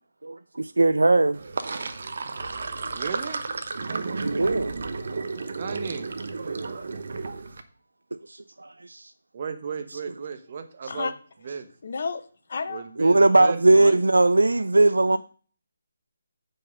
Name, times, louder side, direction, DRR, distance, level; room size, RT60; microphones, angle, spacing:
voice 1, 0.2-1.4 2.4-2.6 2.8-3.0 4.2-4.7 8.3-9.1 13.0-15.2, right 2 dB, 90° right, 13 dB, 0.4 m, -20 dB
Sink (filling or washing), 1.3-7.6, right 4 dB, 60° right, 1.0 m, -32 dB
voice 2, 2.9-3.4 5.5-6.1 9.3-11.1 11.4-11.7 12.7-14.0, right 6 dB, 40° right, 8 dB, 1.2 m, -35 dB
voice 3, 11.8-12.2 12.5-12.8 13.4-13.5 13.8-14.0 15.1-15.2, left 4 dB, 55° left, 10 dB, 1.0 m, -31 dB
8.4 x 5.4 x 5.3 m, 0.42 s
figure-of-eight pair, 160°, 0 cm